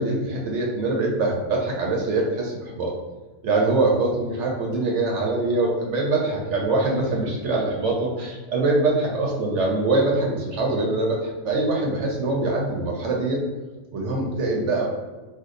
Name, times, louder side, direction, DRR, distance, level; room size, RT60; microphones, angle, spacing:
voice 1, 0.0-2.9 3.4-13.4 13.9-14.8, right 2 dB, 65° right, -2 dB, 0.7 m, -23 dB
2.6 x 2.2 x 3.7 m, 1.3 s
omnidirectional pair, 1.6 m